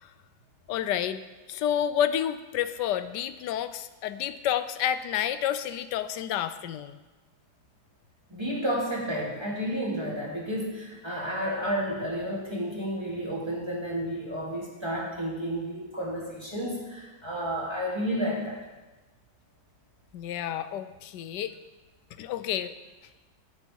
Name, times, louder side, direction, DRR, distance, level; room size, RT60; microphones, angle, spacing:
voice 1, 0.7-1.2 1.5-7.0 20.1-21.5 22.1-22.7, left 10 dB, 75° left, 12 dB, 1.1 m, -29 dB
voice 2, 8.3-18.6, equal, 15° right, -5 dB, 2.6 m, -31 dB
15.5 x 8.2 x 4.6 m, 1.2 s
omnidirectional pair, 2.2 m